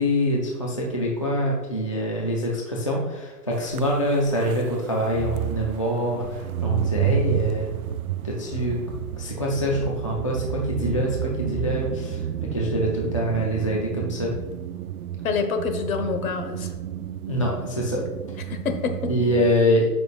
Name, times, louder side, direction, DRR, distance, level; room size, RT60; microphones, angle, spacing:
voice 1, 0.0-7.7 8.2-8.8 9.2-12.2 12.5-14.3 17.3-18.0 19.1-19.9, equal, 25° left, -3 dB, 0.4 m, -25 dB
sound 1, 3.7-19.5, right 10 dB, 65° right, 0.5 m, -31 dB
voice 2, 15.2-16.7 18.5-19.1, left 5 dB, 60° left, 6 dB, 1.4 m, -27 dB
13.0 x 5.5 x 2.4 m, 1.2 s
hypercardioid pair, 165°, 48 cm